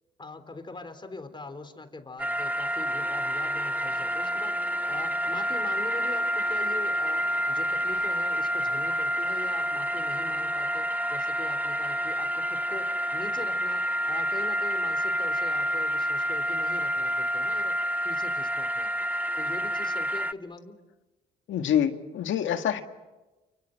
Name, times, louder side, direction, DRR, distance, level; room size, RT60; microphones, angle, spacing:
voice 1, 0.2-4.6 4.9-17.8 18.0-18.9 19.4-20.8, left 3 dB, 25° left, 9 dB, 3.5 m, -42 dB
sound 1, 2.2-20.3, equal, 10° right, 0.9 m, -28 dB
voice 2, 21.5-22.8, left 9 dB, 75° left, 7 dB, 1.9 m, -26 dB
29.0 x 25.0 x 7.9 m, 1.1 s
cardioid pair, 90°, 20 cm